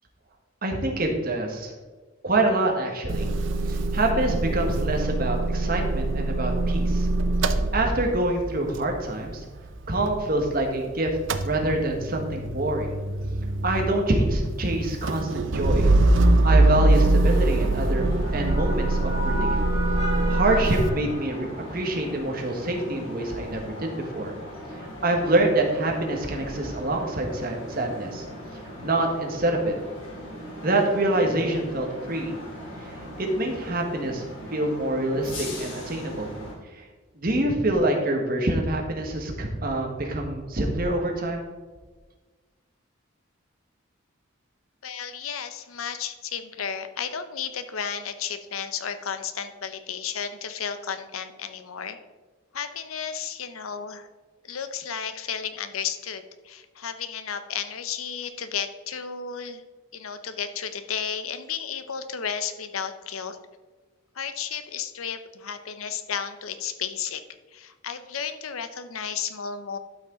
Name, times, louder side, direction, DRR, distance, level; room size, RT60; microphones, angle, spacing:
voice 1, 0.6-1.7 2.2-3.3 3.7-7.1 7.7-9.4 9.9-11.1 11.4-13.0 13.6-15.9 16.4-19.6 20.3-24.3 24.8-28.2 28.8-29.7 30.6-32.4 32.8-36.3 36.7-36.8 37.2-41.5, right 2 dB, 45° right, 1 dB, 1.5 m, -26 dB
Motor vehicle (road) / Engine starting / Idling, 3.1-10.8 11.1-20.9, right 2 dB, 65° right, 0.6 m, -24 dB
sound 1, 17.2-36.5, equal, 65° left, 3.1 m, -37 dB
voice 2, 44.8-52.0 52.5-54.1 54.4-59.6 59.9-63.4 64.1-67.2 67.5-69.8, left 7 dB, 85° left, 10 dB, 0.7 m, -33 dB
12.0 x 6.0 x 3.9 m, 1.3 s
head